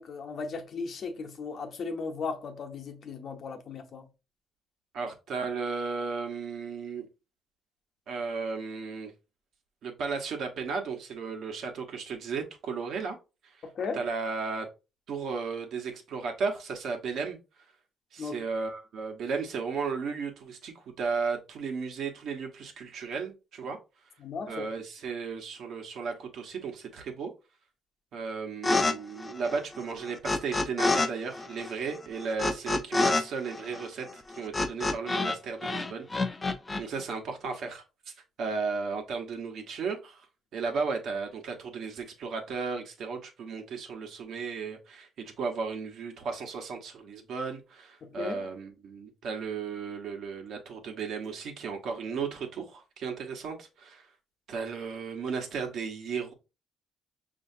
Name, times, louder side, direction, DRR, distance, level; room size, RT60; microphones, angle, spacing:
voice 1, 0.0-4.1 13.6-14.0 18.2-18.4 24.2-24.7 48.0-48.5, left 4 dB, 60° left, 0.9 m, -36 dB
voice 2, 4.9-7.1 8.1-9.1 9.8-13.2 13.9-14.7 15.1-17.4 18.1-23.8 24.5-27.3 28.1-36.4 36.8-37.8 38.4-40.3 40.5-54.0 54.5-56.3, right 5 dB, 75° right, 1.1 m, -35 dB
sound 1, 28.6-28.9 29.2-31.1 31.3-35.4 35.6-36.8, left 2 dB, 25° left, 0.5 m, -28 dB
5.6 x 2.8 x 2.7 m
cardioid pair, 90°, 0 cm